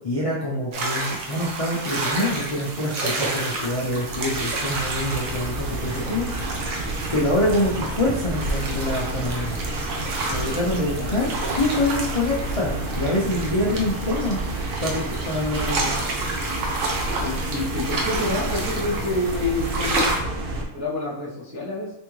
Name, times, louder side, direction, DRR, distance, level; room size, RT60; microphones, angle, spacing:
voice 1, 0.0-6.8 7.1-9.6 10.3-14.4 14.8-15.9, left 1 dB, 60° left, -5 dB, 0.3 m, -25 dB
sound 1, 0.7-20.2, right 2 dB, 65° right, 1.1 m, -30 dB
sound 2, 2.4-20.6, right 2 dB, 85° right, 1.3 m, -31 dB
voice 2, 17.2-20.4 20.7-21.9, left 2 dB, 25° right, -7 dB, 0.3 m, -28 dB
3.6 x 3.1 x 3.0 m, 0.78 s
omnidirectional pair, 1.6 m